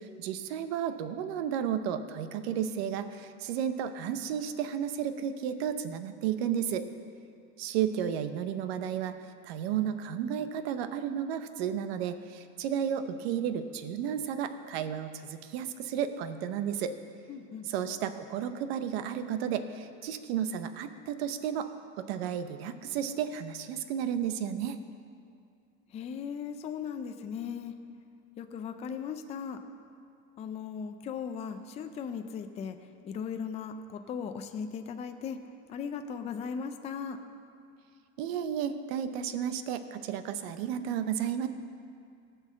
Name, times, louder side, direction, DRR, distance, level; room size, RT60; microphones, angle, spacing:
voice 1, 0.0-6.9 7.6-9.1 9.4-16.9 17.7-21.7 22.0-24.8 38.2-41.5, right 9 dB, 90° right, 10 dB, 0.8 m, -33 dB
voice 2, 17.3-17.7 25.9-27.8 28.4-29.6 30.4-32.8 33.0-35.4 35.7-37.2, left 6 dB, 20° left, 7 dB, 0.4 m, -37 dB
16.5 x 5.6 x 7.5 m, 2.4 s
cardioid pair, 160°, 30 cm